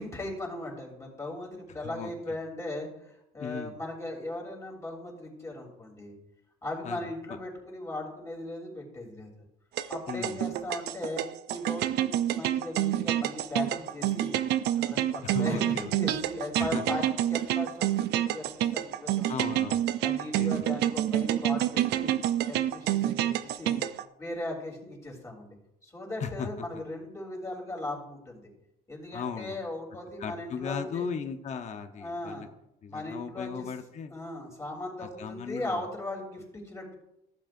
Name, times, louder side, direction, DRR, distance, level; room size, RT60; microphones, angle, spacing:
voice 1, 0.0-6.2 6.6-9.4 9.9-14.4 14.8-19.5 20.0-22.1 22.5-23.8 24.2-25.6 25.8-28.5 28.9-31.0 32.0-32.5 32.9-33.7 34.1-37.0, left 1 dB, 15° left, -1 dB, 3.2 m, -38 dB
voice 2, 3.4-3.8 6.8-7.1 10.1-10.4 15.3-15.9 16.7-16.8 19.3-19.9 20.3-20.7 26.2-26.7 29.1-29.6 30.2-32.5 32.8-34.1 35.0-35.9, left 6 dB, 45° left, 6 dB, 0.9 m, -37 dB
sound 1, 9.8-24.0, right 12 dB, 80° right, 0.5 m, -28 dB
15.0 x 7.5 x 2.6 m, 0.83 s
cardioid pair, 110°, 17 cm